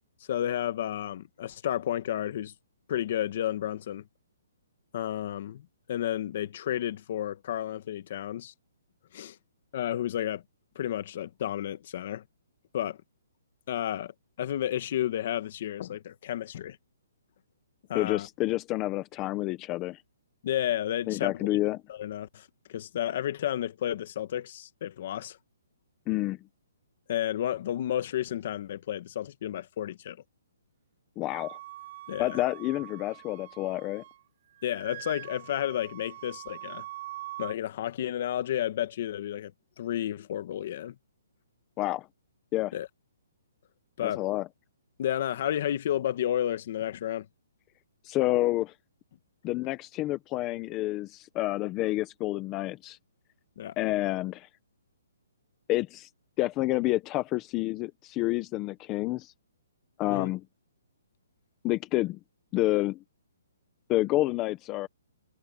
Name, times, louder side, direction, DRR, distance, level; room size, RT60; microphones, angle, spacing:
voice 1, 0.3-2.5 2.9-4.0 4.9-8.5 9.1-9.4 9.7-10.4 10.7-12.2 12.7-13.0 13.7-14.1 14.4-16.8 17.9-18.3 20.4-21.6 21.9-25.4 27.1-30.2 32.1-32.4 34.6-36.8 37.4-39.5 39.8-40.9 42.7-42.9 44.0-44.2 45.0-47.2 53.6-53.7 60.1-60.3, left 11 dB, 40° left, 1.6 m, -31 dB
voice 2, 17.9-20.0 21.1-21.8 26.1-26.4 31.2-31.6 32.2-34.0 41.8-42.1 42.5-42.7 44.0-44.5 48.0-48.7 49.4-53.0 53.8-54.5 55.7-56.1 56.4-59.3 60.0-60.4 61.6-62.2 62.5-63.0 63.9-64.9, left 17 dB, 15° left, 0.9 m, -29 dB
Wind instrument woodwind instrument, 31.3-34.2 34.5-37.5, right 15 dB, 35° right, 2.4 m, -44 dB
hypercardioid pair, 170°, 0 cm